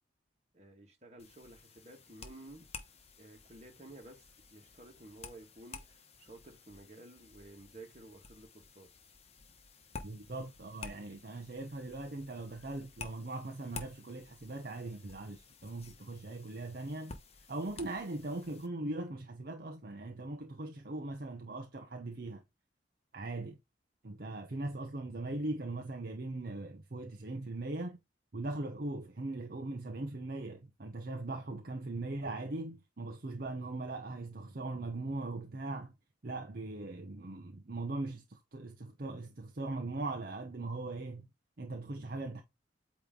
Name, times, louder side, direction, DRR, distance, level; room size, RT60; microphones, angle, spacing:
voice 1, 0.5-2.7 3.2-4.2 4.5-8.9 9.9-10.1, right 2 dB, 35° right, 1.9 m, -53 dB
sound 1, 1.2-18.7, left 4 dB, 35° left, 1.0 m, -52 dB
voice 2, 10.0-17.1 17.5-22.4 23.1-23.6 24.0-28.0 28.3-35.9 36.2-41.3 41.6-42.4, right 2 dB, 50° right, 0.8 m, -40 dB
8.5 x 3.1 x 3.8 m
head